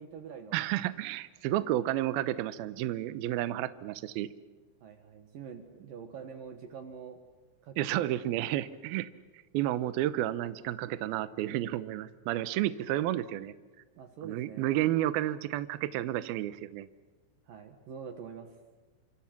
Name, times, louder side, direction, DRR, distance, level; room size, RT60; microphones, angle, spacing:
voice 1, 0.0-0.6 4.8-7.2 7.6-8.2 13.9-14.7 17.5-18.5, right 6 dB, 60° right, 7 dB, 2.5 m, -45 dB
voice 2, 0.5-4.3 7.8-9.1 9.5-13.5 14.2-16.9, right 14 dB, 85° right, 14 dB, 2.1 m, -31 dB
28.0 x 25.5 x 6.0 m, 1.3 s
omnidirectional pair, 5.5 m